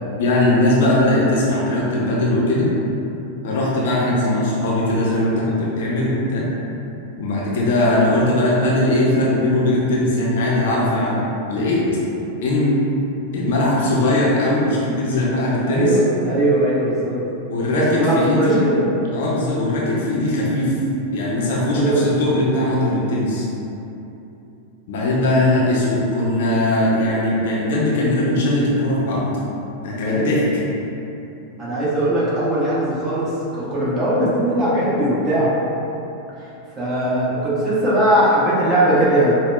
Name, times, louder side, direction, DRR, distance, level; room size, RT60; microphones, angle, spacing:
voice 1, 0.2-2.7 3.4-6.5 7.2-11.8 12.4-12.8 13.3-16.0 17.5-18.6 19.1-20.7 21.1-23.5 24.9-29.4 29.8-30.5, left 1 dB, 55° left, -5 dB, 0.6 m, -19 dB
voice 2, 15.6-17.2 17.7-18.9 21.7-22.0 30.0-30.3 31.6-35.5 36.8-39.4, right 1 dB, 25° right, -9 dB, 1.0 m, -19 dB
5.2 x 2.2 x 2.3 m, 2.9 s
figure-of-eight pair, 90°, 0 cm